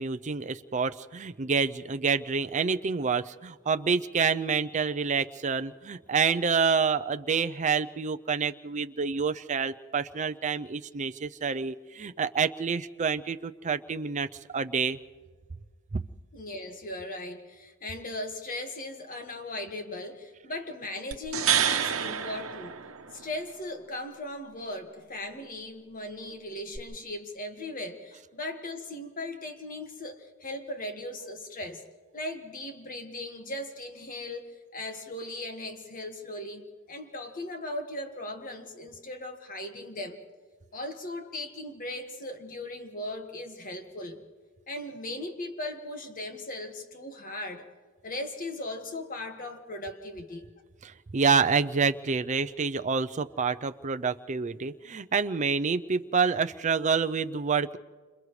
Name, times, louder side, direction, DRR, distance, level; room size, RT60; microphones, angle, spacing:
voice 1, 0.0-15.0 50.8-57.8, right 5 dB, 35° right, 10 dB, 0.5 m, -28 dB
voice 2, 16.3-22.7 23.1-31.8 32.1-34.4 34.7-40.2 40.7-44.2 44.7-47.7 48.0-50.5, left 1 dB, 40° left, 6 dB, 1.7 m, -38 dB
sound 1, 21.1-23.4 26.7-26.8, right 9 dB, 75° right, 1.1 m, -28 dB
30.0 x 27.0 x 3.2 m, 1.5 s
head